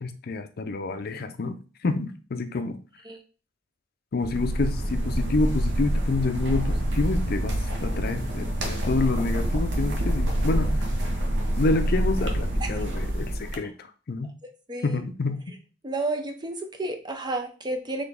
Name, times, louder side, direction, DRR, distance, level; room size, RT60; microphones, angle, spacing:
voice 1, 0.0-2.8 4.1-10.7 11.6-14.3 14.8-15.4, left 3 dB, 50° left, 8 dB, 0.5 m, -28 dB
sound 1, 4.2-13.6, right 1 dB, 65° right, 0.8 m, -26 dB
voice 2, 14.7-15.0 15.8-18.1, right 2 dB, 20° right, 6 dB, 0.5 m, -31 dB
4.0 x 3.3 x 3.5 m, 0.36 s
head